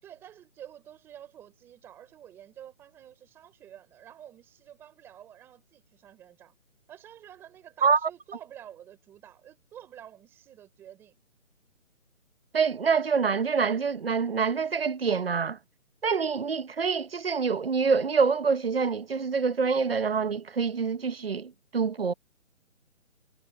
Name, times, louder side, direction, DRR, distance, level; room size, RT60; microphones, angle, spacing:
voice 1, 0.0-6.5 6.9-11.2, right 10 dB, 5° right, 3.7 m, -49 dB
voice 2, 12.5-15.6 16.0-22.1, right 5 dB, 45° right, 1.0 m, -26 dB
hypercardioid pair, 175°, 41 cm